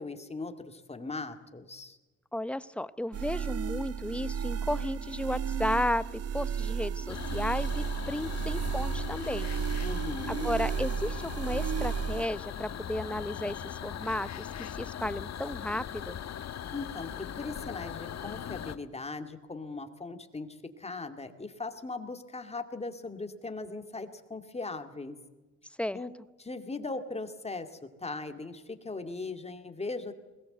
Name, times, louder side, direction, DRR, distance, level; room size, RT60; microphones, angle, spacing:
voice 1, 0.0-2.0 9.8-10.6 16.7-25.2 25.9-26.1 26.4-30.1, left 3 dB, 20° left, 7 dB, 2.3 m, -39 dB
voice 2, 2.3-9.5 10.3-16.2 25.8-26.0, left 1 dB, 5° left, 15 dB, 0.7 m, -34 dB
sound 1, 3.1-12.3, right 7 dB, 55° right, 0.8 m, -33 dB
sound 2, 7.1-18.8, left 9 dB, 60° left, 1.3 m, -39 dB
21.0 x 18.5 x 8.0 m, 1.2 s
cardioid pair, 90°, 30 cm